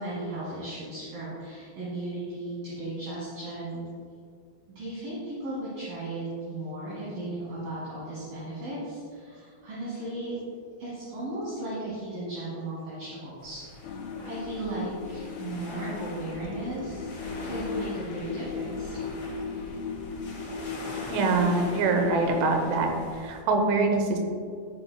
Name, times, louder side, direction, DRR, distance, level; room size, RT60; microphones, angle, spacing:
voice 1, 0.0-3.8 4.8-10.4 10.8-13.9 14.2-18.9, right 2 dB, 60° right, -8 dB, 2.9 m, -36 dB
sound 1, 13.4-23.4, left 2 dB, 60° left, 1.6 m, -43 dB
sound 2, 13.8-23.0, left 5 dB, 85° left, 2.5 m, -37 dB
voice 2, 21.1-24.2, right 3 dB, 80° right, 4 dB, 3.1 m, -24 dB
14.0 x 6.2 x 2.2 m, 2.2 s
omnidirectional pair, 5.7 m